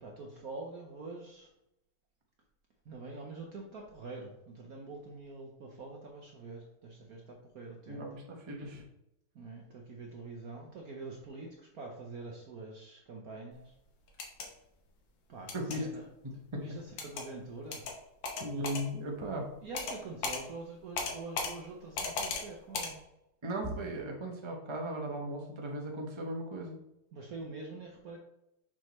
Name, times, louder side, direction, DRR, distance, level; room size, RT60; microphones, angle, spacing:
voice 1, 0.0-1.5 2.9-8.1 9.3-13.7 15.3-16.1 16.3-17.8 19.6-23.0 27.1-28.2, right 3 dB, 60° right, 0 dB, 1.0 m, -45 dB
voice 2, 7.9-8.8 15.5-15.9 16.5-16.6 18.4-19.5 23.4-26.8, right 1 dB, 25° right, 1 dB, 0.5 m, -37 dB
sound 1, 14.1-14.5 15.5-15.8 17.0-17.2 17.7-17.9 18.2-18.8 19.7-20.0 20.2-20.4 21.0-21.5 22.0-22.4 22.7-22.9, left 4 dB, 65° left, 1.7 m, -35 dB
6.4 x 5.8 x 3.1 m, 0.84 s
omnidirectional pair, 2.4 m